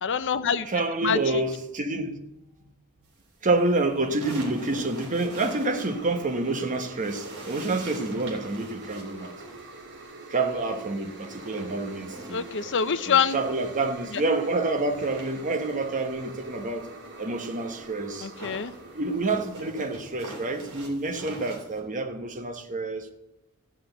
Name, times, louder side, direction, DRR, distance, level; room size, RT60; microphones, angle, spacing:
voice 1, 0.0-0.7 1.0-1.4 12.3-13.4 14.1-14.2 18.2-18.7, left 7 dB, 55° left, 0.6 m, -25 dB
voice 2, 0.7-2.2 2.6-2.7 3.4-9.3 10.3-12.5 13.1-16.9 17.2-18.3 18.9-23.1, right 2 dB, 35° right, 1.1 m, -28 dB
sound 1, 3.4-6.6 6.9-14.2 14.5-21.8, right 2 dB, 80° right, 3.1 m, -44 dB
sound 2, 4.0-20.4, right 2 dB, 55° right, 2.2 m, -45 dB
13.5 x 6.4 x 7.9 m
head